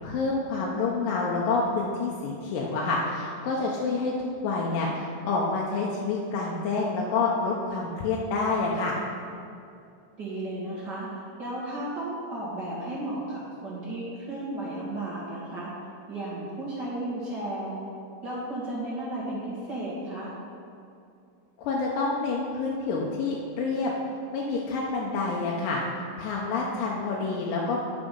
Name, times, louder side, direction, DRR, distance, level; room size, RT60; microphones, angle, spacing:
voice 1, 0.0-9.0 21.6-23.9 24.3-25.8 26.2-27.8, left 3 dB, 90° left, -3 dB, 2.5 m, -28 dB
voice 2, 10.2-11.1 11.4-15.7 16.1-17.8 18.2-20.3, right 1 dB, 40° right, -8 dB, 1.9 m, -34 dB
10.0 x 6.0 x 5.3 m, 2.5 s
omnidirectional pair, 3.8 m